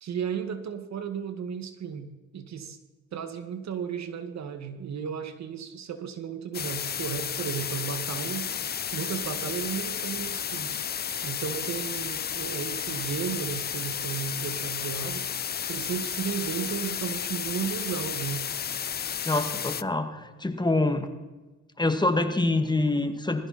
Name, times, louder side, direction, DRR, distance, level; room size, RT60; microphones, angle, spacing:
voice 1, 0.0-2.8 3.1-8.5 8.9-10.8 11.2-15.3 15.7-18.4, right 7 dB, 65° right, 9 dB, 2.0 m, -34 dB
sound 1, 6.5-19.8, left 8 dB, 35° left, 0.5 m, -32 dB
voice 2, 19.3-21.1 21.8-23.5, left 2 dB, 15° left, 8 dB, 1.8 m, -26 dB
20.5 x 15.5 x 4.3 m, 1.2 s
cardioid pair, 90°, 30 cm